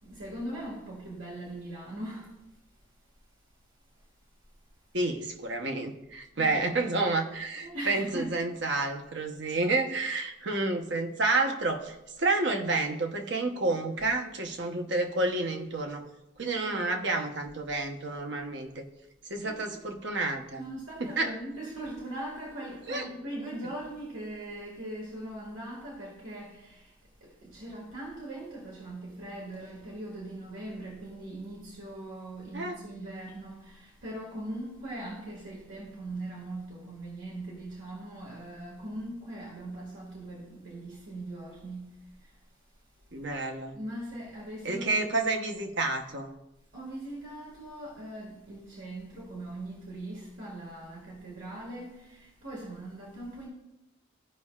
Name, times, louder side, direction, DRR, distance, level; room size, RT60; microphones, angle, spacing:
voice 1, 0.0-2.4 6.3-7.1 7.6-8.4 16.7-16.9 19.4-19.8 20.6-26.9 27.2-42.3 43.7-45.1 46.7-53.5, right 1 dB, 85° right, 2.0 m, -40 dB
voice 2, 4.9-16.1 16.4-18.8 19.3-20.6 21.0-21.3 22.9-23.0 32.5-32.8 43.1-43.8 44.6-46.3, right 2 dB, 65° right, 0.9 m, -30 dB
15.5 x 5.3 x 2.4 m
head